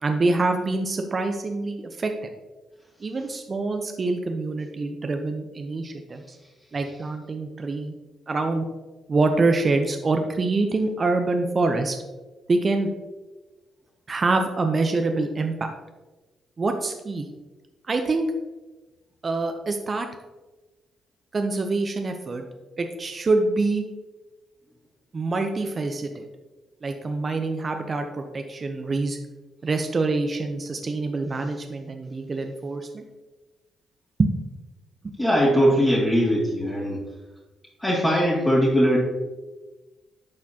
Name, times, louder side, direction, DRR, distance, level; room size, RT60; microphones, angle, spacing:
voice 1, 0.0-2.1 3.0-6.4 6.7-7.9 8.3-8.6 9.1-12.0 12.5-12.9 14.1-15.7 16.6-17.3 17.9-18.3 19.2-20.1 21.3-22.4 22.8-23.8 25.1-26.3 26.8-29.2 29.6-33.0 34.2-34.3, right 3 dB, 40° right, 5 dB, 0.7 m, -25 dB
voice 2, 35.2-37.0 37.8-39.0, equal, 15° left, -7 dB, 2.4 m, -20 dB
11.5 x 4.2 x 2.8 m, 1.2 s
hypercardioid pair, 45°, 0 cm